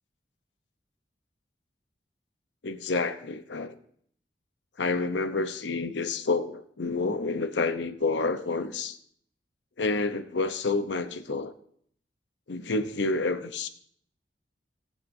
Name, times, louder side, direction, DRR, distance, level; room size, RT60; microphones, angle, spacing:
voice 1, 2.6-3.7 4.8-9.0 9.8-11.5 12.5-13.7, left 3 dB, 75° left, 10 dB, 0.8 m, -29 dB
19.0 x 7.5 x 2.7 m, 0.63 s
head